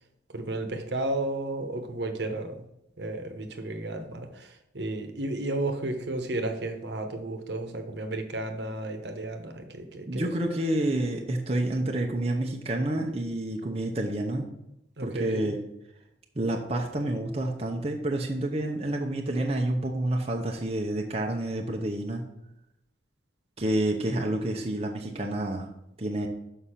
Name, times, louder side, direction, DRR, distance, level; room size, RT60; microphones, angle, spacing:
voice 1, 0.3-2.6 3.0-10.3 15.0-15.5, right 2 dB, 70° right, 5 dB, 1.1 m, -33 dB
voice 2, 10.1-14.5 15.0-15.6 16.3-22.2 23.6-25.7 26.0-26.3, right 1 dB, 35° right, 1 dB, 0.8 m, -29 dB
6.6 x 5.7 x 5.7 m, 0.85 s
head